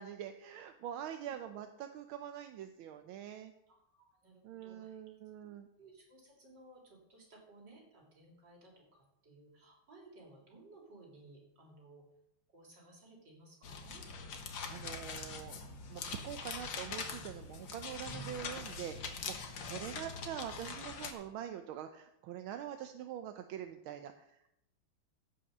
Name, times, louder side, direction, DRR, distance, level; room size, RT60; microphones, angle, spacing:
voice 1, 0.0-3.5 4.4-5.7 14.7-15.6 15.9-24.3, right 10 dB, 85° right, 7 dB, 1.5 m, -44 dB
voice 2, 3.7-5.0 5.8-12.0 12.5-14.0 19.6-19.8, right 2 dB, 60° right, -1 dB, 3.9 m, -59 dB
sound 1, 13.6-21.1, left 5 dB, 70° left, 1.9 m, -43 dB
15.5 x 5.8 x 6.6 m, 0.82 s
omnidirectional pair, 2.2 m